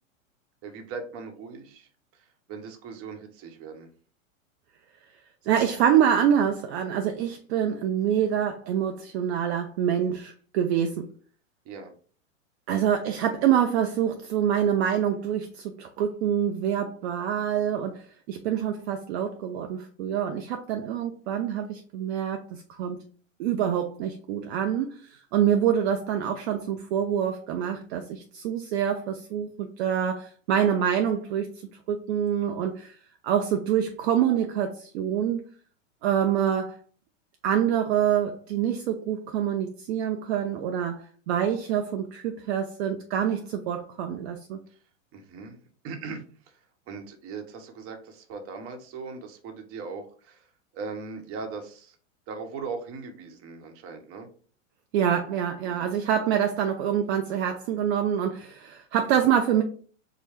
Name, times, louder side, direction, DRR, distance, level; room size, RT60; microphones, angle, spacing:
voice 1, 0.6-3.9 7.6-7.9 11.6-11.9 44.7-44.8 45.1-46.6 46.9-52.0 52.3-54.3 55.6-55.9, right 4 dB, 35° right, 1.1 m, -39 dB
voice 2, 5.4-11.1 12.7-23.0 23.4-31.5 31.9-33.0 33.2-35.4 36.0-36.8 37.4-44.6 54.9-59.6, right 9 dB, 55° right, 0.7 m, -26 dB
4.7 x 2.2 x 4.5 m
hypercardioid pair, 115°, 39 cm